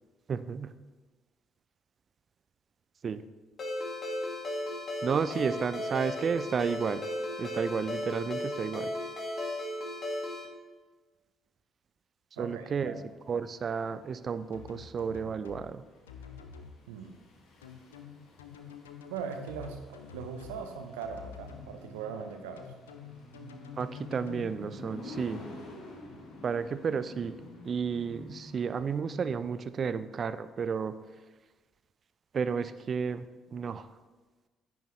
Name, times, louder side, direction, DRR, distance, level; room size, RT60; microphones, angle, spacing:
voice 1, 0.3-0.7 3.0-3.2 5.0-7.0 7.4-8.9 12.4-12.9 13.3-15.8 23.8-25.4 26.4-30.9 32.3-33.3 33.5-33.9, right 6 dB, 45° right, 14 dB, 0.5 m, -32 dB
Ringtone, 3.6-10.5, left 1 dB, 50° left, 2.2 m, -35 dB
voice 2, 12.4-13.0 16.9-17.2 19.1-22.7, right 6 dB, 80° right, 6 dB, 0.8 m, -40 dB
sound 1, 13.1-29.0, left 2 dB, 65° left, 1.8 m, -49 dB
sound 2, 14.5-15.7 16.1-16.7 17.6-20.6 21.0-21.7 22.6-24.4, left 7 dB, 85° left, 0.6 m, -47 dB
10.0 x 9.1 x 3.1 m, 1.3 s
hypercardioid pair, 50°, 0 cm